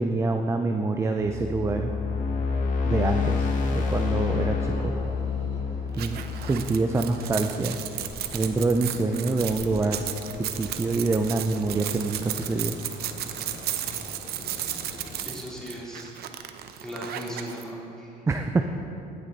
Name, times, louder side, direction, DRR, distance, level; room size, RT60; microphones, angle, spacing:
voice 1, 0.0-1.9 2.8-4.9 5.9-7.8 8.3-10.1 10.6-12.8 18.3-18.6, right 3 dB, 15° right, 5 dB, 0.5 m, -26 dB
sound 1, 1.2-7.4, left 5 dB, 50° left, 1.4 m, -28 dB
sound 2, 3.2-15.3, left 1 dB, 65° left, 2.3 m, -43 dB
sound 3, 5.9-17.6, right 11 dB, 70° right, 0.6 m, -34 dB
voice 2, 15.2-16.1 16.8-18.1, equal, 5° left, -6 dB, 2.8 m, -37 dB
17.0 x 6.4 x 4.0 m, 2.8 s
cardioid pair, 110°, 17 cm